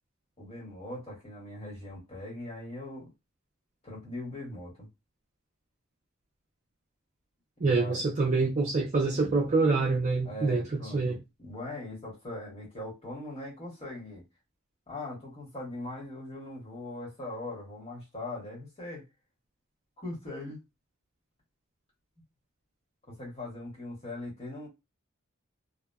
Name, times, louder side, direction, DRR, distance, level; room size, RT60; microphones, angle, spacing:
voice 1, 0.4-3.1 3.8-4.9 7.6-8.1 10.2-14.2 14.9-19.0 20.0-20.6 23.1-24.7, left 2 dB, 30° left, 1.3 m, -40 dB
voice 2, 7.6-11.2, right 3 dB, 35° right, 0.4 m, -26 dB
2.7 x 2.1 x 2.3 m
head